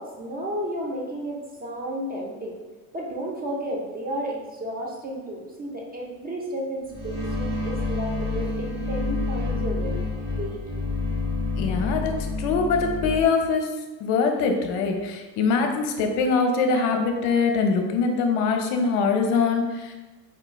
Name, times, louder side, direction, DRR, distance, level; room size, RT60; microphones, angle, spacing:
voice 1, 0.0-2.6 2.9-10.0 10.3-10.6, equal, 20° right, -2 dB, 0.6 m, -32 dB
sound 1, 6.9-13.2, left 3 dB, 40° right, 1.2 m, -28 dB
voice 2, 11.6-13.7 14.0-19.9, left 4 dB, 55° left, 4 dB, 0.7 m, -23 dB
4.7 x 2.4 x 2.3 m, 1.2 s
hypercardioid pair, 70°, 47 cm